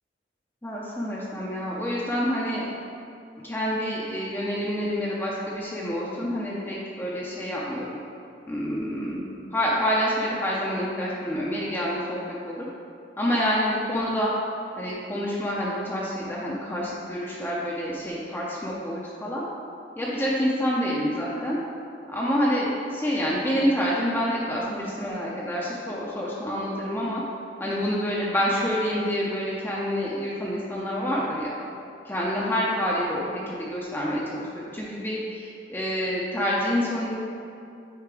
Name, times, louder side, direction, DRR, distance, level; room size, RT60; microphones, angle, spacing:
voice 1, 0.6-2.6 3.4-8.0 8.5-9.2 9.5-12.2 12.4-12.7 13.2-14.3 14.8-19.4 20.0-21.6 22.1-27.2 27.6-31.5 32.1-37.1, equal, 15° left, -5 dB, 0.6 m, -27 dB
8.2 x 2.9 x 4.7 m, 2.6 s
head